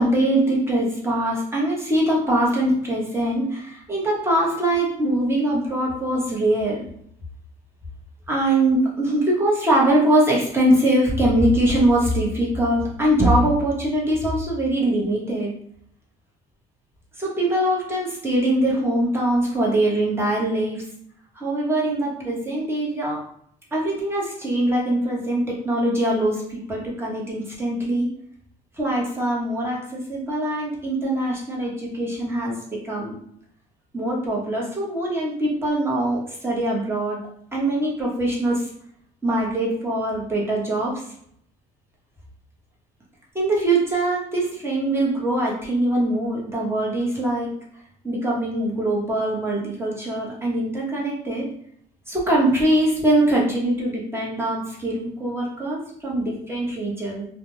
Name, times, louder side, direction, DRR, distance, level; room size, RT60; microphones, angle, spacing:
voice 1, 0.0-6.8 8.3-15.5 17.2-20.8 21.3-23.2 23.7-28.1 28.8-33.1 33.9-37.2 37.5-38.7 39.2-41.0 43.3-47.5 48.0-51.5 52.1-57.3, right 1 dB, 15° right, -4 dB, 0.9 m, -22 dB
2.4 x 2.1 x 3.0 m, 0.67 s
cardioid pair, 110°, 17 cm